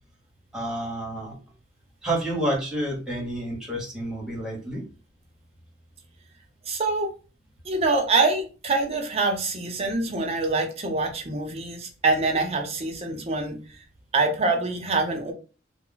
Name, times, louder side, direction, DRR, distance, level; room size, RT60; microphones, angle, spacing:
voice 1, 0.5-1.4 2.0-4.8, right 1 dB, 5° right, -3 dB, 1.1 m, -29 dB
voice 2, 6.7-7.1 7.6-13.6 14.1-15.3, right 3 dB, 35° right, 3 dB, 0.6 m, -25 dB
2.3 x 2.1 x 3.7 m, 0.34 s
head